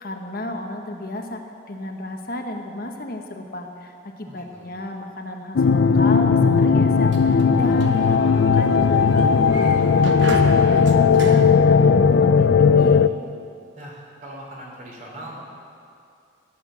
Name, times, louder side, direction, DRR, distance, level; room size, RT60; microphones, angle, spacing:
voice 1, 0.0-1.4 1.7-9.8 10.1-13.1, left 1 dB, 50° left, 3 dB, 1.1 m, -32 dB
voice 2, 4.3-4.7 13.8-15.4, right 1 dB, 40° right, -2 dB, 3.1 m, -40 dB
sound 1, 5.6-13.1, left 5 dB, 75° left, 0.5 m, -16 dB
Sliding door, 6.8-12.5, right 2 dB, 75° right, 1.1 m, -35 dB
15.0 x 10.5 x 7.5 m, 2.4 s
head